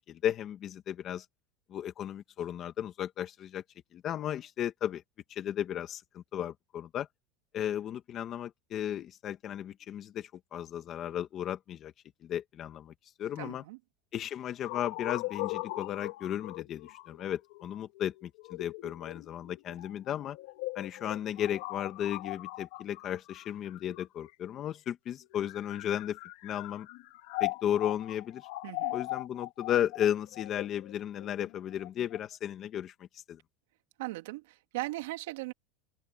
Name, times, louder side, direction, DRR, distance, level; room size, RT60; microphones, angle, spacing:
voice 1, 0.1-1.3 1.7-3.6 3.9-5.0 5.3-7.1 7.5-11.9 12.2-12.9 13.2-13.6 14.1-20.4 20.8-26.9 27.4-28.5 28.9-33.4, left 10 dB, 30° left, 1.9 m, -35 dB
voice 2, 13.4-13.8 28.6-29.0 34.0-35.5, right 20 dB, 75° right, 3.0 m, -38 dB
sound 1, 14.6-24.5 25.2-32.2, left 21 dB, 60° left, 2.1 m, -40 dB
open air
supercardioid pair, 165°, 0 cm